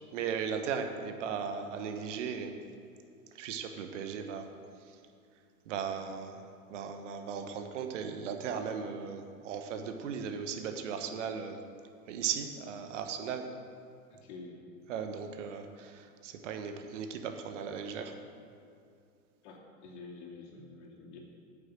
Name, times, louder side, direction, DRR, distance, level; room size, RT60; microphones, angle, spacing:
voice 1, 0.1-2.5 3.3-4.5 5.7-11.6 12.1-13.5 14.9-18.1, right 6 dB, 55° right, 6 dB, 1.2 m, -37 dB
voice 2, 14.1-14.6 19.4-21.2, left 3 dB, 50° left, -2 dB, 2.6 m, -48 dB
8.9 x 7.3 x 7.6 m, 2.4 s
figure-of-eight pair, 95°, 43 cm